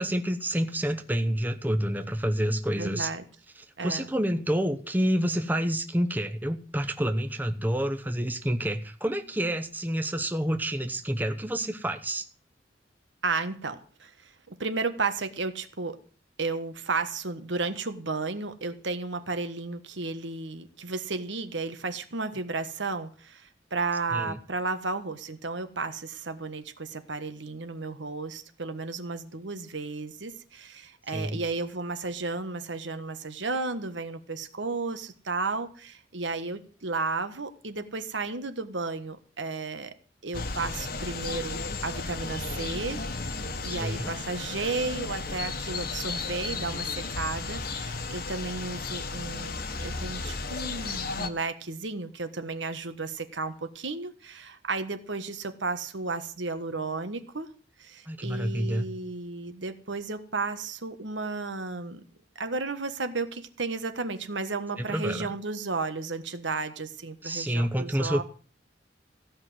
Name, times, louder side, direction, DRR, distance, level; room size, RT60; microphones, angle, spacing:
voice 1, 0.0-3.1 3.8-12.3 24.1-24.4 31.1-31.4 43.7-44.1 58.1-58.9 64.8-65.3 67.2-68.2, equal, 10° right, 8 dB, 0.9 m, -28 dB
voice 2, 2.7-3.2 3.8-4.1 13.2-16.0 16.4-39.9 40.2-43.4 43.6-57.5 57.8-62.0 62.4-68.2, right 3 dB, 80° right, 9 dB, 1.4 m, -33 dB
sound 1, 40.3-51.3, left 3 dB, 55° left, 1.3 m, -34 dB
15.5 x 5.9 x 9.5 m, 0.41 s
head